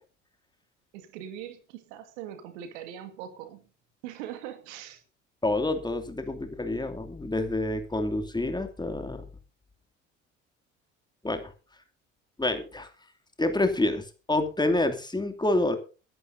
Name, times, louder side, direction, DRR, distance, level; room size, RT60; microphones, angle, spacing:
voice 1, 0.9-3.6 4.0-5.0, right 10 dB, 70° right, 9 dB, 2.1 m, -41 dB
voice 2, 5.4-9.3 11.2-11.5 12.4-12.9 13.4-15.8, left 2 dB, 10° left, 7 dB, 2.7 m, -28 dB
23.0 x 11.0 x 2.7 m, 0.34 s
hypercardioid pair, 60°, 36 cm